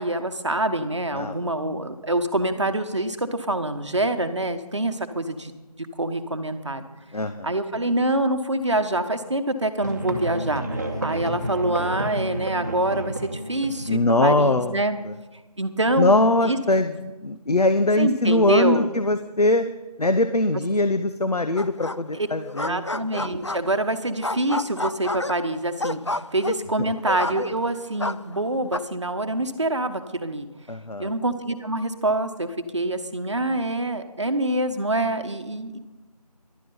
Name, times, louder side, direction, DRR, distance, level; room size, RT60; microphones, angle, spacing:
voice 1, 0.0-5.5 6.0-6.8 7.4-15.0 15.6-16.2 16.4-16.6 18.0-18.9 22.1-22.3 22.7-30.5 31.0-35.8, right 1 dB, 45° right, 8 dB, 1.1 m, -25 dB
voice 2, 7.1-7.5 13.9-14.8 16.0-19.6 20.0-22.8 30.7-31.1, left 2 dB, 75° left, 10 dB, 0.8 m, -21 dB
Musical instrument, 9.8-14.6, right 1 dB, 25° right, 1.3 m, -31 dB
sound 1, 21.6-22.2 22.4-23.8 24.2-27.7 28.0-28.8, left 2 dB, 45° left, 0.4 m, -30 dB
15.0 x 11.5 x 5.4 m, 1.2 s
figure-of-eight pair, 175°, 20 cm